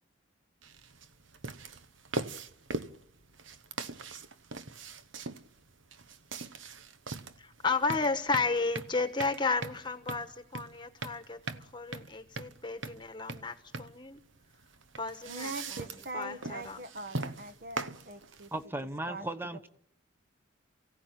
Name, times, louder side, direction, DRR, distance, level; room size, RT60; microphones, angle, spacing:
sound 1, 0.6-18.6, right 3 dB, 75° right, 1.0 m, -41 dB
voice 1, 7.4-14.2 15.0-15.9 16.1-16.8, left 4 dB, 20° left, 1.3 m, -33 dB
voice 2, 15.2-18.5 19.1-19.2, right 2 dB, 50° right, 1.3 m, -42 dB
voice 3, 18.5-19.7, right 1 dB, 10° right, 1.0 m, -36 dB
29.0 x 16.5 x 9.2 m
head